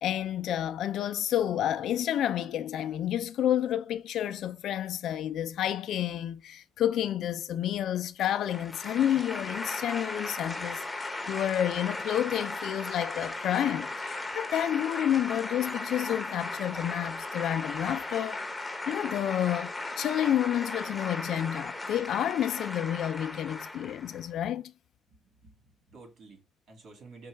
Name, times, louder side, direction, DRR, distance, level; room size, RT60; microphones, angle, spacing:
voice 1, 0.0-18.4 18.9-24.6, left 11 dB, 75° left, 0.3 m, -30 dB
sound 1, 8.2-24.2, left 2 dB, 15° left, 0.7 m, -37 dB
voice 2, 25.1-27.3, right 3 dB, 70° right, 2.0 m, -52 dB
5.3 x 2.3 x 3.3 m
cardioid pair, 90°, 0 cm